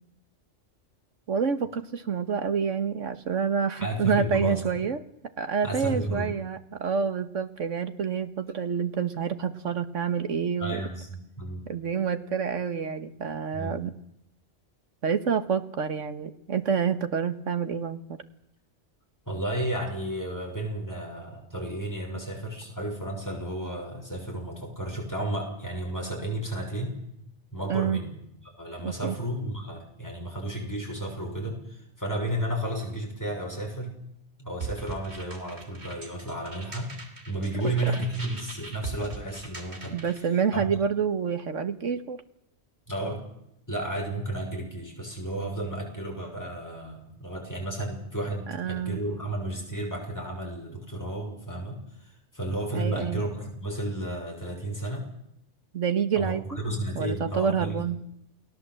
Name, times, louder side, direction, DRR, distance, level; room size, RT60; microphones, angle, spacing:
voice 1, 1.3-5.0 5.4-10.8 11.7-13.9 15.0-18.2 27.7-28.0 28.8-29.2 37.6-37.7 39.9-42.2 48.5-49.0 52.7-53.2 55.7-56.6 57.0-58.0, right 6 dB, 85° right, 10 dB, 1.7 m, -28 dB
voice 2, 3.8-4.6 5.6-6.3 10.6-11.7 13.5-13.8 19.3-27.0 27.5-28.1 28.5-34.0 34.4-36.9 37.3-40.0 40.5-40.6 42.9-43.4 43.7-51.8 52.3-55.1 56.1-57.9, right 1 dB, 15° left, 0 dB, 6.4 m, -32 dB
sound 1, 34.6-40.2, right 4 dB, 60° right, 3.5 m, -41 dB
29.0 x 19.0 x 7.8 m, 0.80 s
omnidirectional pair, 1.2 m